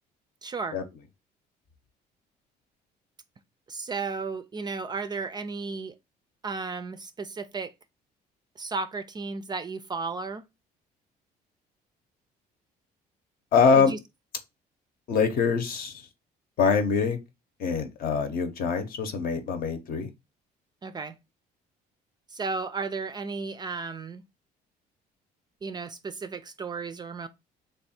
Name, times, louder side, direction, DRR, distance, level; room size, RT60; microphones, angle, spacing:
voice 1, 0.4-0.8 3.7-5.9 6.4-7.7 8.6-10.4 13.8-14.0 20.8-21.2 22.3-24.2 25.6-27.3, right 4 dB, 25° right, 0.3 m, -34 dB
voice 2, 13.5-14.0 15.1-16.1 16.6-17.2 17.6-20.1, left 5 dB, 60° left, 0.8 m, -24 dB
3.2 x 2.4 x 4.2 m
cardioid pair, 110°, 17 cm